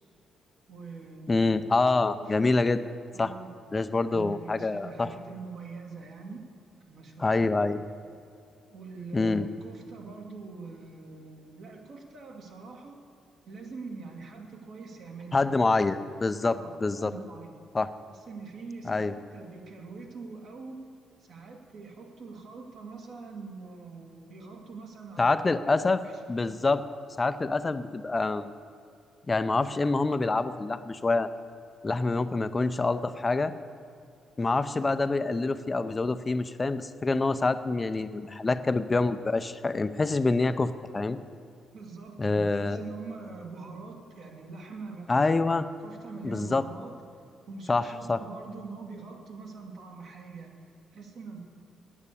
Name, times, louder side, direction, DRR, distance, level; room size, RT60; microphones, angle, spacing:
voice 1, 0.7-1.6 2.1-2.3 3.1-3.5 4.1-6.5 6.9-7.6 8.7-13.0 13.5-16.0 16.4-17.5 18.1-20.8 21.2-25.4 25.8-26.2 41.7-46.9 47.5-51.4, right 4 dB, 65° right, 0 dB, 2.0 m, -43 dB
voice 2, 1.3-2.8 3.2-3.3 3.7-5.1 7.2-7.8 9.1-9.5 15.3-17.1 17.7-17.9 18.8-19.1 25.2-26.0 26.3-26.8 27.2-28.5 29.3-31.3 31.8-33.5 34.4-41.2 42.2-42.8 45.1-45.6 46.2-46.6 47.7-48.2, left 3 dB, 25° left, 11 dB, 0.5 m, -26 dB
9.6 x 9.0 x 8.4 m, 2.5 s
cardioid pair, 90°, 0 cm